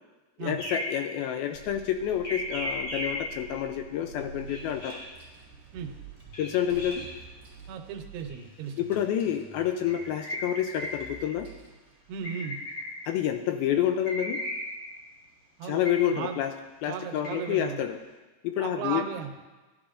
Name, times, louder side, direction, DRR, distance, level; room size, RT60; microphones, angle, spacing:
voice 1, 0.4-5.0 6.4-7.0 8.8-11.5 13.1-14.4 15.6-16.5 16.8-18.0 18.4-19.1, left 10 dB, 80° left, 7 dB, 2.2 m, -28 dB
sound 1, 0.6-1.1 2.2-3.4 4.5-5.1 6.3-7.1 8.3-8.4 9.6-11.2 12.2-13.1 14.0-14.9 15.9-16.2 17.1-17.6, left 1 dB, 40° left, 3.5 m, -36 dB
sound 2, 1.5-7.8, right 4 dB, 70° right, 2.3 m, -48 dB
sound 3, 4.2-12.2, right 4 dB, 10° right, 2.6 m, -52 dB
voice 2, 7.7-8.7 12.1-12.6 15.6-15.8 16.1-16.4 16.9-17.8 18.6-19.3, right 7 dB, 85° right, 4 dB, 2.9 m, -35 dB
15.5 x 11.5 x 2.5 m, 1.2 s
omnidirectional pair, 4.6 m